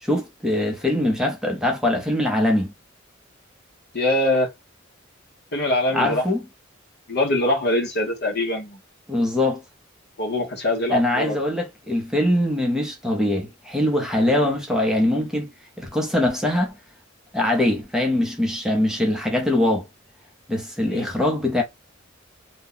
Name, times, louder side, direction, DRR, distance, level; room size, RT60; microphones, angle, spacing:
voice 1, 0.0-2.7 5.9-6.4 9.1-9.6 10.9-15.5 15.8-16.8 17.3-19.8 20.5-21.6, left 1 dB, 5° right, 0.7 m, -22 dB
voice 2, 3.9-4.5 5.5-6.3 7.1-8.8 10.2-11.4 20.9-21.1, left 1 dB, 55° left, 1.0 m, -23 dB
2.7 x 2.2 x 3.7 m
head